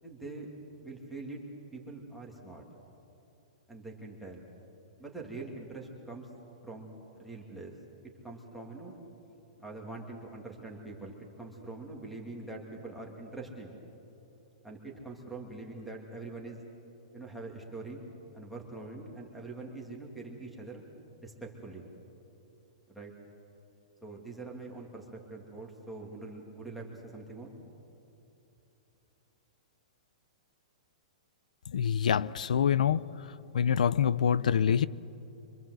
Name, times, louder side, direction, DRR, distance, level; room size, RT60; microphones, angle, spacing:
voice 1, 0.0-0.5 0.8-1.4 1.7-2.6 3.7-4.4 5.0-6.3 6.6-6.9 7.1-7.7 8.2-9.0 9.6-13.7 14.6-16.6 17.1-18.0 18.3-20.8 21.2-21.8 22.9-23.1 24.0-27.5, right 3 dB, ahead, -3 dB, 2.6 m, -44 dB
voice 2, 31.7-33.0 33.5-34.9, left 8 dB, 85° left, 18 dB, 0.7 m, -25 dB
26.0 x 25.5 x 7.9 m, 2.9 s
hypercardioid pair, 170°, 4 cm